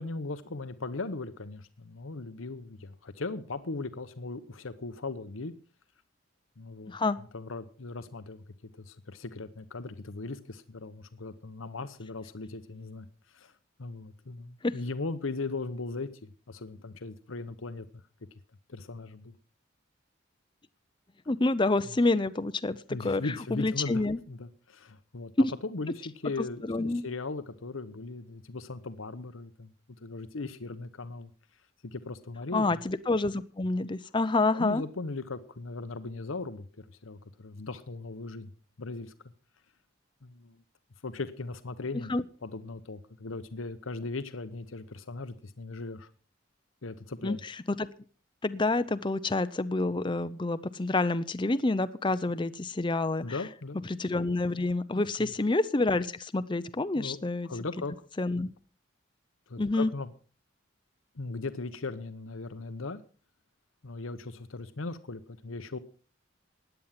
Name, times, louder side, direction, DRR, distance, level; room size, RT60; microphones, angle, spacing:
voice 1, 0.0-5.5 6.6-6.9 7.3-8.4 8.8-13.5 13.8-18.0 18.7-19.4 22.9-25.3 25.6-31.3 31.8-32.7 34.5-38.5 38.8-39.1 40.2-40.6 41.0-42.1 42.4-46.1 46.8-47.4 53.2-53.8 55.2-55.3 56.9-57.2 57.4-57.9 59.5-60.1 61.1-63.0 63.8-65.8, left 3 dB, 85° left, 12 dB, 1.0 m, -38 dB
voice 2, 6.9-7.2 14.6-14.7 21.3-23.2 23.5-24.2 25.4-25.5 26.6-27.0 32.5-34.8 42.1-42.2 47.2-47.5 47.8-47.9 48.4-53.4 53.9-57.5 58.2-58.5 59.6-59.9, left 2 dB, 25° left, 12 dB, 0.6 m, -28 dB
16.5 x 10.5 x 5.8 m, 0.40 s
head